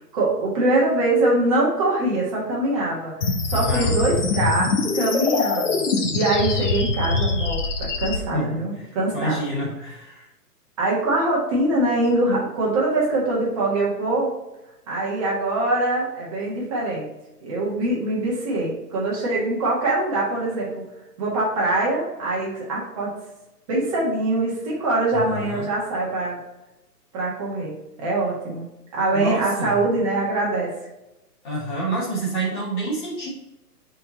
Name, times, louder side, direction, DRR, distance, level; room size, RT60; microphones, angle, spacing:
voice 1, 0.1-9.4 10.8-14.3 14.9-17.1 17.4-20.8 21.2-23.1 23.7-26.4 27.1-28.7 28.9-30.7, right 2 dB, 20° right, -5 dB, 1.5 m, -23 dB
sound 1, 3.2-8.2, left 3 dB, 50° left, 1.0 m, -23 dB
voice 2, 3.5-4.0 8.3-10.3 25.1-25.7 29.1-29.8 31.4-33.3, right 1 dB, 30° left, -5 dB, 2.1 m, -28 dB
5.4 x 4.3 x 4.3 m, 0.95 s
hypercardioid pair, 170°, 48 cm